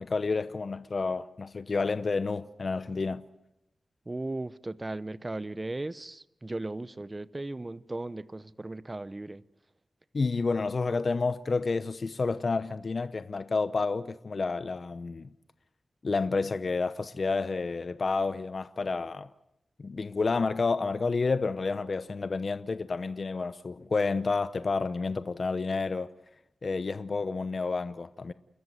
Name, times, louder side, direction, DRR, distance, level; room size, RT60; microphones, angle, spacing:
voice 1, 0.0-3.2 10.1-15.3 16.0-19.3 19.8-26.1 26.6-28.3, left 4 dB, 60° left, 0.8 m, -30 dB
voice 2, 4.1-9.5, right 2 dB, 30° right, 0.8 m, -37 dB
29.5 x 14.0 x 9.4 m
cardioid pair, 60°, 0 cm